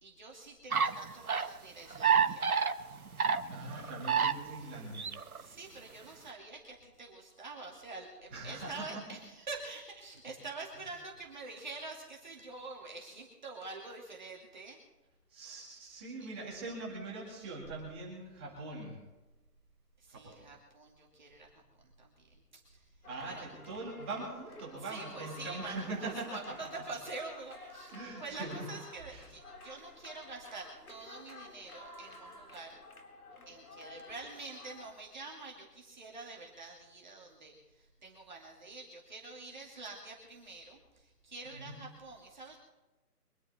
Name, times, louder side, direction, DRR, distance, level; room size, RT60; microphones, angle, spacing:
voice 1, 0.0-2.5 5.3-14.8 16.2-16.3 20.0-21.6 22.0-22.9 23.2-23.5 24.8-32.8 33.5-42.6, right 3 dB, 30° right, -2 dB, 2.5 m, -46 dB
sound 1, 0.7-1.5 1.9-4.6 4.9-5.4, right 6 dB, 65° right, 1.3 m, -29 dB
voice 2, 3.5-5.1 8.3-8.9 15.3-19.0 20.1-20.4 23.0-26.3 27.9-28.7 29.1-29.3 41.4-41.8, right 2 dB, 5° right, -5 dB, 2.1 m, -42 dB
sound 2, 23.0-34.9, left 2 dB, 65° left, 3.9 m, -52 dB
25.0 x 10.5 x 4.3 m, 1.1 s
hypercardioid pair, 175°, 47 cm